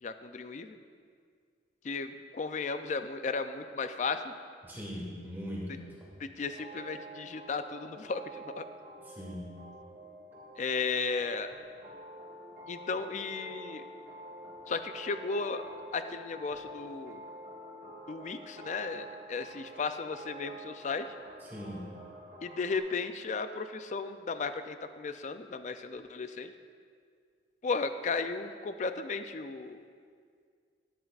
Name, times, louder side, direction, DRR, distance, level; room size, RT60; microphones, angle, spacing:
voice 1, 0.0-0.8 1.8-4.3 6.2-8.6 10.6-11.5 12.7-13.8 14.7-15.6 15.9-17.2 18.1-21.1 22.4-26.5 27.6-29.8, left 4 dB, 40° left, 9 dB, 0.3 m, -35 dB
voice 2, 4.6-6.1 9.0-9.6 21.4-21.9, equal, 10° right, -5 dB, 2.4 m, -41 dB
sound 1, 6.5-22.8, right 1 dB, 45° right, 1.7 m, -48 dB
13.5 x 11.0 x 2.4 m, 2.1 s
head